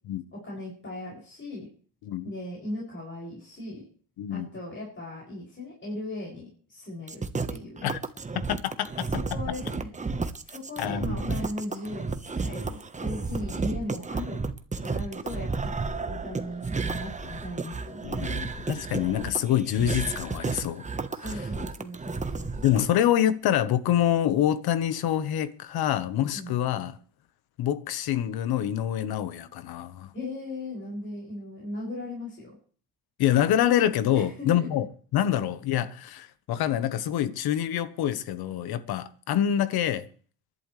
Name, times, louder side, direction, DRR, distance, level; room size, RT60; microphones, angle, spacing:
voice 1, 0.3-1.7 2.2-3.8 4.3-7.8 9.1-9.9 10.4-14.4 14.8-18.2 21.1-22.9 26.3-26.5 30.1-32.6 34.1-34.7, left 1 dB, 30° left, 6.8 m, -38 dB
voice 2, 4.2-4.5 7.8-8.0 8.5-9.1 10.8-11.3 18.0-20.8 22.6-27.0 27.6-30.1 33.2-34.9 35.1-40.1, left 11 dB, 70° left, 1.2 m, -26 dB
sound 1, 7.1-22.9, right 4 dB, 20° right, 1.1 m, -32 dB
26.5 x 11.5 x 3.3 m
cardioid pair, 90°, 38 cm